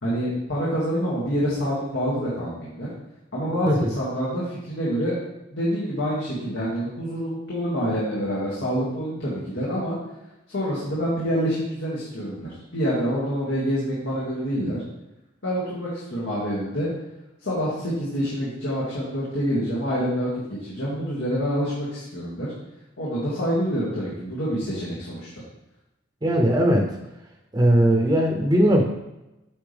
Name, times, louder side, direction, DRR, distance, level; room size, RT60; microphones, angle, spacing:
voice 1, 0.0-2.9 3.3-5.1 5.5-10.0 10.5-14.8 15.4-16.9 17.4-22.5 23.0-25.3, equal, 90° left, -8 dB, 2.2 m, -27 dB
voice 2, 26.2-26.9 27.5-28.8, right 1 dB, 20° right, 1 dB, 0.7 m, -19 dB
8.6 x 5.6 x 3.5 m, 0.96 s
head